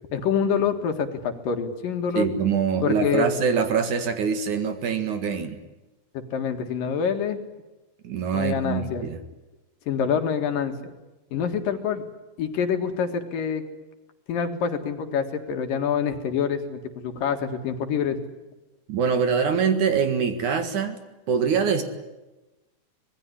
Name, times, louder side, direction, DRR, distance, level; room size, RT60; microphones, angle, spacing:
voice 1, 0.1-2.2 2.8-3.3 6.1-7.4 8.3-9.1 9.9-10.9 11.3-12.0 12.4-13.6 14.3-18.2, left 7 dB, 65° left, 6 dB, 3.5 m, -26 dB
voice 2, 2.1-5.6 8.0-9.2 18.9-21.0 21.3-21.8, right 6 dB, 60° right, 8 dB, 3.1 m, -24 dB
25.5 x 20.0 x 9.9 m, 1.1 s
omnidirectional pair, 4.3 m